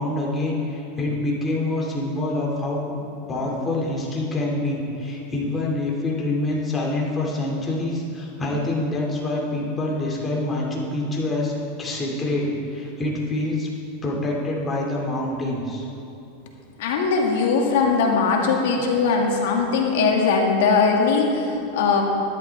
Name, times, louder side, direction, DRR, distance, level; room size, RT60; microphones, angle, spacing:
voice 1, 0.0-2.9 3.3-11.5 11.8-13.7 14.0-15.9, left 2 dB, 20° left, -3 dB, 2.5 m, -26 dB
voice 2, 16.8-22.0, left 4 dB, 70° left, 1 dB, 2.0 m, -20 dB
13.0 x 11.0 x 3.5 m, 2.8 s
supercardioid pair, 130°, 0 cm